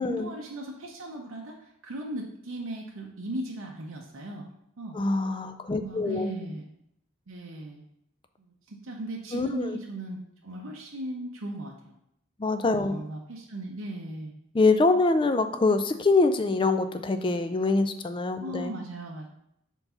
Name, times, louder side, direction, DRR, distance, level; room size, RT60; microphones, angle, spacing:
voice 1, 0.0-4.5 4.8-5.0 5.7-6.6 7.3-7.8 8.4-12.0 12.7-14.3 18.4-19.3, right 1 dB, 85° right, -1 dB, 0.7 m, -37 dB
voice 2, 4.9-6.3 9.3-9.8 12.4-13.0 14.5-18.7, left 3 dB, 25° left, 9 dB, 0.3 m, -24 dB
4.6 x 4.0 x 5.6 m, 0.77 s
head